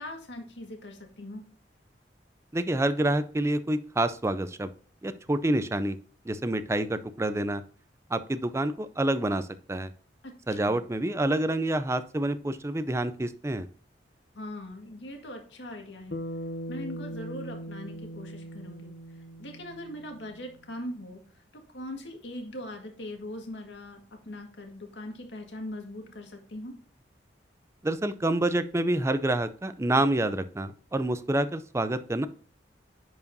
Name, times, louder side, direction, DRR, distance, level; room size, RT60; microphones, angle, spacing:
voice 1, 0.0-1.5 10.2-10.8 14.3-16.2 16.7-18.9 19.4-21.2 21.5-26.7, left 1 dB, 85° left, 3 dB, 1.8 m, -41 dB
voice 2, 2.5-4.7 5.0-6.0 6.3-7.6 8.1-9.9 10.5-13.7 27.8-32.3, right 1 dB, 15° right, 13 dB, 0.4 m, -27 dB
Bass guitar, 16.1-20.5, equal, 65° left, 0.6 m, -40 dB
10.5 x 4.8 x 2.7 m, 0.43 s
head